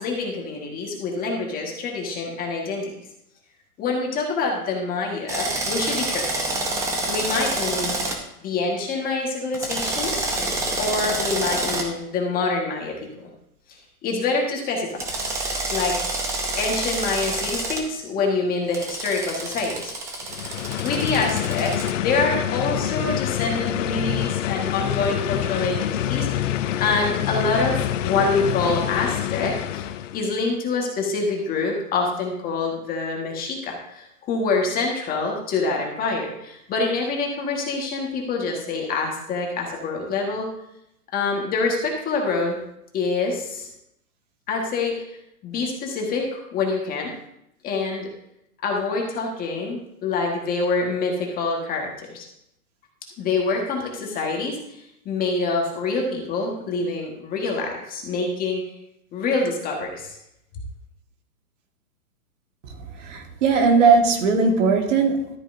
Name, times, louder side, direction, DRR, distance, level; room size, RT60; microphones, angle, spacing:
voice 1, 0.0-2.9 3.8-6.3 6.8-8.0 8.4-10.3 10.8-13.3 14.0-15.1 15.7-16.0 16.6-19.9 20.8-29.9 30.1-40.5 41.1-42.6 42.9-43.7 44.5-45.1 45.4-47.1 47.6-48.1 48.6-52.2 53.2-58.6 59.1-60.2, left 3 dB, 20° left, 0 dB, 1.7 m, -26 dB
Drill, 5.3-8.2 9.5-11.8 15.0-17.8 18.7-21.9, right 2 dB, 5° right, 0.7 m, -28 dB
sound 1, 20.2-30.3, left 11 dB, 55° left, 0.6 m, -26 dB
voice 2, 63.0-65.4, right 4 dB, 50° right, 3 dB, 1.8 m, -19 dB
13.0 x 8.8 x 2.7 m, 0.79 s
hypercardioid pair, 145°, 46 cm